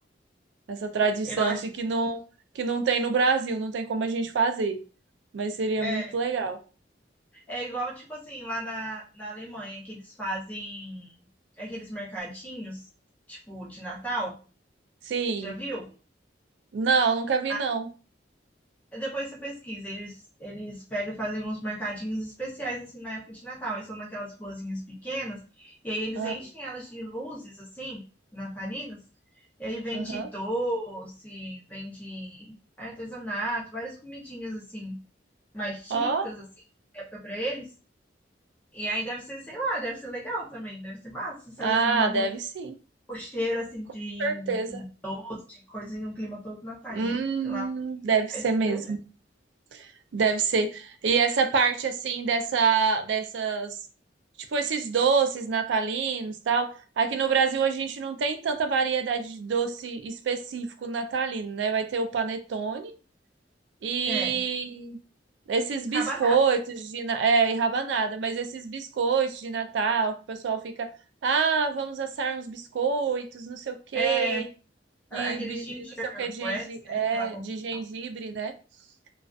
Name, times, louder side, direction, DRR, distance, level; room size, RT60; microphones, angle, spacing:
voice 1, 0.7-2.2 2.6-4.8 5.3-6.6 15.1-15.5 16.7-17.9 26.2-26.3 29.9-30.3 35.9-36.3 41.6-42.7 44.2-44.8 46.9-49.0 49.7-53.8 54.5-62.9 63.8-65.0 65.5-70.9 71.2-74.4 75.1-75.6 76.2-78.5, right 5 dB, 75° right, 8 dB, 0.4 m, -27 dB
voice 2, 1.2-1.6 5.8-6.1 7.3-11.1 11.6-12.8 13.3-14.4 15.4-15.9 17.5-17.6 18.9-28.0 28.3-29.0 29.6-35.0 35.5-36.4 36.9-37.7 38.7-42.3 43.1-47.7 48.3-48.8 64.0-64.4 65.9-66.3 73.9-74.5 75.1-77.4 77.7-77.8, right 1 dB, 10° left, -4 dB, 0.5 m, -34 dB
2.4 x 2.3 x 2.3 m, 0.37 s
head